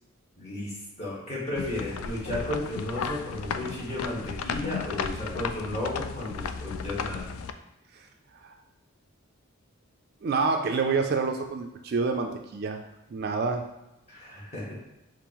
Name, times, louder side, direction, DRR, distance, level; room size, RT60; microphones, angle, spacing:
voice 1, 0.4-7.3 14.1-14.7, left 1 dB, 30° left, -7 dB, 1.4 m, -34 dB
sound 1, 1.6-7.5, left 6 dB, 80° left, 0.3 m, -34 dB
voice 2, 10.2-12.8 13.1-13.7, right 4 dB, 45° right, 5 dB, 0.3 m, -27 dB
5.3 x 2.5 x 3.0 m, 0.91 s
head